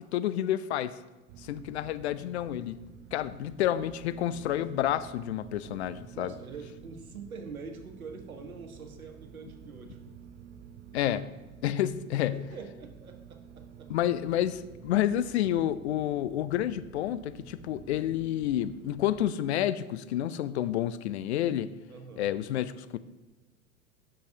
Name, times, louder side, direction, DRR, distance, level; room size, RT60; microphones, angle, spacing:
voice 1, 0.1-1.0 1.4-2.8 3.1-6.3 10.9-11.2 11.6-12.3 13.9-21.7 22.2-23.0, left 12 dB, 50° left, 14 dB, 0.5 m, -29 dB
sound 1, 1.3-19.3, right 8 dB, 25° right, 0.5 m, -50 dB
voice 2, 6.1-10.0 12.3-13.9 21.9-22.3, right 4 dB, 75° right, 5 dB, 1.2 m, -44 dB
10.0 x 6.9 x 2.7 m, 1.2 s
figure-of-eight pair, 90°, 42 cm